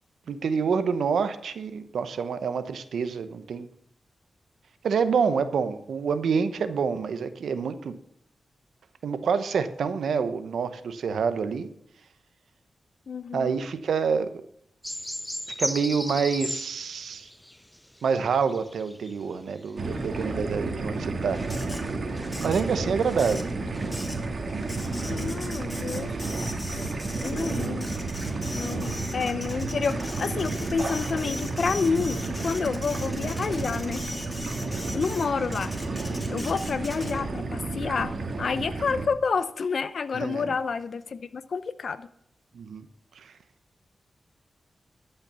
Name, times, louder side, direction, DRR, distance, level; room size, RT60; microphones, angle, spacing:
voice 1, 0.3-3.7 4.8-7.9 9.0-11.7 13.3-14.3 15.6-17.3 18.0-21.5 22.4-23.5 40.1-40.5 42.5-42.9 43.2-43.3, right 6 dB, 85° right, 11 dB, 0.8 m, -27 dB
voice 2, 13.1-13.6 22.8-23.1 25.0-26.1 26.8-26.9 27.2-27.9 28.5-34.0 34.9-35.7 36.3-38.1 38.4-42.1, left 5 dB, 70° left, 14 dB, 0.6 m, -29 dB
sound 1, 14.8-19.1 19.7-19.8, equal, 10° left, 0.4 m, -35 dB
sound 2, 19.8-39.1, right 3 dB, 60° right, 1.7 m, -31 dB
Printer, 21.3-37.4, left 1 dB, 25° left, 2.4 m, -41 dB
12.5 x 5.7 x 6.9 m, 0.70 s
cardioid pair, 45°, 0 cm